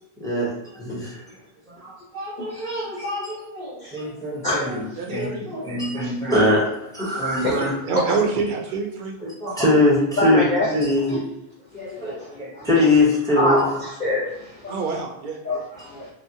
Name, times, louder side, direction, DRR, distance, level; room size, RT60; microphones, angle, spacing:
voice 1, 0.2-1.2 1.7-7.7 9.2-10.5 10.7-11.2 11.7-13.6, left 1 dB, 5° left, -6 dB, 0.6 m, -23 dB
voice 2, 2.4-3.0 3.8-4.0 4.4-4.6 5.9-6.1 7.1-7.6 8.1-8.2 10.2-10.8 11.1-11.2 11.7-12.3 12.5-12.7 13.3-14.9 15.4-16.1, left 2 dB, 50° left, -8 dB, 0.7 m, -26 dB
voice 3, 5.0-5.5 7.6-9.1 14.7-15.4, right 4 dB, 60° right, 1 dB, 0.6 m, -26 dB
2.7 x 2.1 x 2.7 m, 0.88 s
omnidirectional pair, 1.1 m